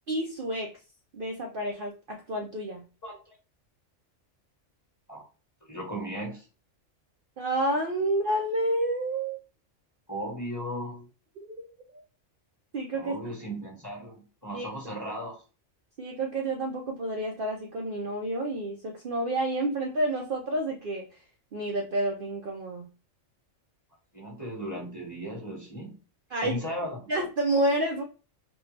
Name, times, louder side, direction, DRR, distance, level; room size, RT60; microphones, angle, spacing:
voice 1, 0.1-0.8 1.1-2.8 7.4-9.4 11.8-11.9 12.7-13.1 14.5-14.7 15.0-15.1 16.0-21.1 21.5-22.9 26.3-26.6 27.1-28.0, right 1 dB, 55° right, 1 dB, 0.7 m, -29 dB
voice 2, 3.0-3.4 5.1-5.2 5.7-6.5 10.1-11.1 12.9-15.4 24.1-25.9 26.4-27.1, equal, 15° left, -2 dB, 1.3 m, -36 dB
4.4 x 2.3 x 3.2 m, 0.34 s
omnidirectional pair, 1.3 m